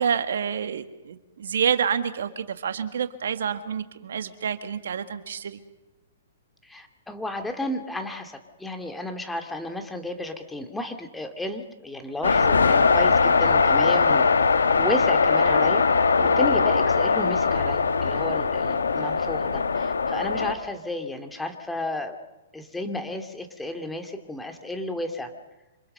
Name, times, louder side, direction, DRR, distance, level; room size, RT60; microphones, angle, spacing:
voice 1, 0.0-5.6, right 7 dB, 70° right, 10 dB, 1.7 m, -28 dB
voice 2, 6.6-14.3 14.7-15.8 16.2-22.1 22.5-25.3, left 1 dB, 5° left, 5 dB, 2.5 m, -32 dB
sound 1, 12.2-20.5, left 4 dB, 85° left, 1.7 m, -21 dB
27.5 x 26.5 x 6.7 m, 1.0 s
hypercardioid pair, 120°, 0 cm